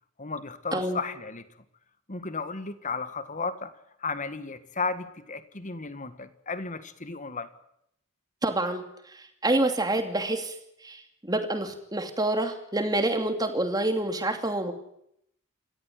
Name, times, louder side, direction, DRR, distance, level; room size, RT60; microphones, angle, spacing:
voice 1, 0.2-1.4 2.1-3.7 4.0-7.5, left 4 dB, 35° left, 12 dB, 1.7 m, -34 dB
voice 2, 8.4-10.5 10.8-14.7, right 2 dB, 20° right, 7 dB, 2.6 m, -27 dB
28.0 x 14.0 x 9.4 m, 0.75 s
head